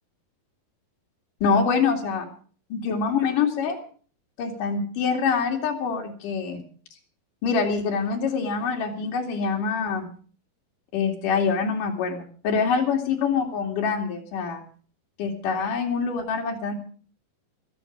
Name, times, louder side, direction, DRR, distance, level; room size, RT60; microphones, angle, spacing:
voice 1, 1.4-2.3 2.7-3.8 4.4-6.6 7.4-10.1 10.9-14.6 15.2-16.7, left 5 dB, 65° left, 1 dB, 4.0 m, -25 dB
18.0 x 13.5 x 4.7 m, 0.42 s
omnidirectional pair, 4.2 m